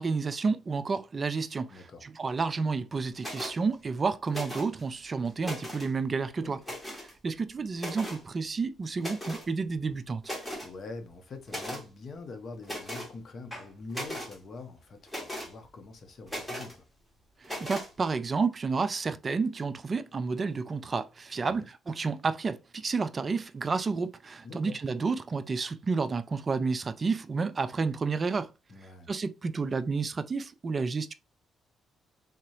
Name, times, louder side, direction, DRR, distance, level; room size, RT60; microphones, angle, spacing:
voice 1, 0.0-6.6 7.0-10.3 17.4-28.5 29.1-31.1, right 4 dB, 35° right, 0.3 m, -30 dB
voice 2, 1.7-2.1 6.4-6.6 10.6-16.9 21.4-21.7 24.4-24.8 28.7-29.1, left 3 dB, 50° left, 0.9 m, -44 dB
sound 1, 3.2-3.6 4.3-4.8 5.3-5.9 6.6-7.1 7.8-8.2 9.0-9.5 9.9-10.0 10.2-10.7 11.5-11.8 12.6-13.1 13.5-14.4 15.1-15.5 16.3-16.7 17.4-17.9, equal, 5° left, 1.8 m, -38 dB
3.7 x 2.8 x 3.1 m
cardioid pair, 90°, 0 cm